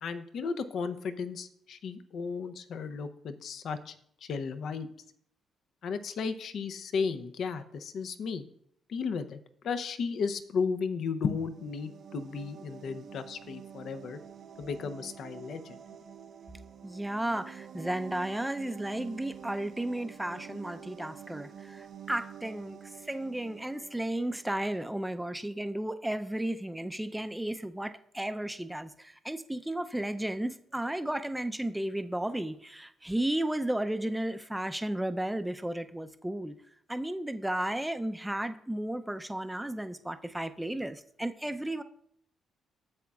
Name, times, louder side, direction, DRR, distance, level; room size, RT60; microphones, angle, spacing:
voice 1, 0.0-3.9 4.2-4.9 5.8-8.4 8.9-14.2 14.6-15.8, left 5 dB, 65° left, 10 dB, 0.6 m, -34 dB
sound 1, 11.2-24.8, right 8 dB, 60° right, 0.6 m, -48 dB
voice 2, 16.8-36.5 36.9-41.8, right 1 dB, 5° right, 9 dB, 0.5 m, -34 dB
10.5 x 7.4 x 2.4 m, 0.68 s
cardioid pair, 90°, 0 cm